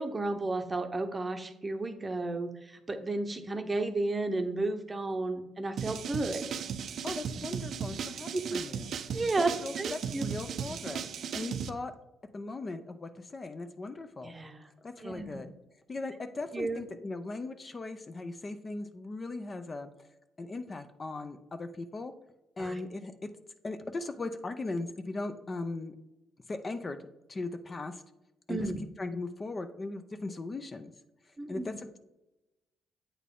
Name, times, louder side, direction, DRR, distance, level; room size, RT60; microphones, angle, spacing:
voice 1, 0.0-6.5 8.3-8.6 9.1-10.2 14.2-14.7 15.0-15.4 16.5-16.8 22.6-22.8 28.5-28.8 31.4-31.8, right 2 dB, 25° right, 7 dB, 0.7 m, -33 dB
sound 1, 5.8-11.7, right 7 dB, 65° right, 0.4 m, -36 dB
voice 2, 7.0-11.1 11.3-11.9 12.3-14.3 14.8-15.5 15.9-20.1 20.4-22.1 22.6-23.3 23.6-25.9 26.5-28.0 28.5-28.7 29.0-30.9 31.3-32.0, left 2 dB, 30° left, 9 dB, 0.5 m, -38 dB
8.2 x 3.9 x 3.7 m, 0.95 s
cardioid pair, 90°, 0 cm